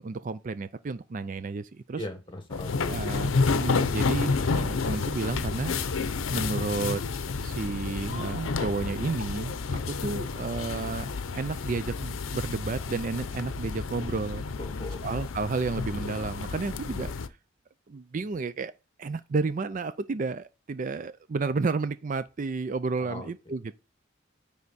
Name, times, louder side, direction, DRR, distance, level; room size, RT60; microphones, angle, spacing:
voice 1, 0.0-2.0 2.9-5.7 6.3-7.0 7.4-14.4 15.0-17.1 17.9-18.7 19.0-23.8, right 4 dB, 40° right, 0.4 m, -32 dB
voice 2, 2.0-2.9 14.6-15.2 23.0-23.3, left 1 dB, 25° left, 1.5 m, -39 dB
sound 1, 2.5-17.3, left 4 dB, 90° left, 0.6 m, -30 dB
9.6 x 3.5 x 4.1 m
head